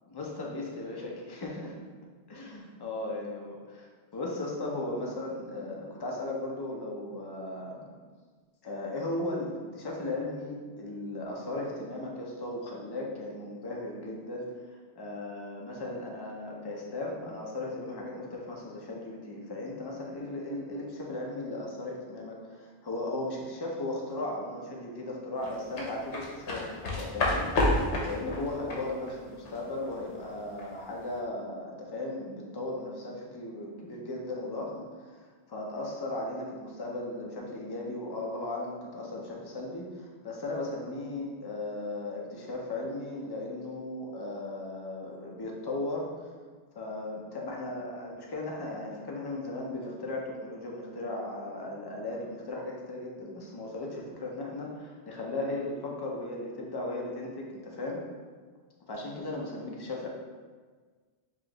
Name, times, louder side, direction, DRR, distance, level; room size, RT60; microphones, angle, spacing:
voice 1, 0.1-1.8 2.3-3.8 4.1-7.9 8.6-14.5 15.0-27.5 28.0-35.2 35.5-46.3 46.7-58.0 58.9-60.1, left 2 dB, 35° left, -2 dB, 0.4 m, -36 dB
sound 1, 25.4-30.6 31.0-31.2, left 1 dB, 80° left, 1.0 m, -30 dB
4.8 x 2.4 x 2.9 m, 1.5 s
omnidirectional pair, 1.2 m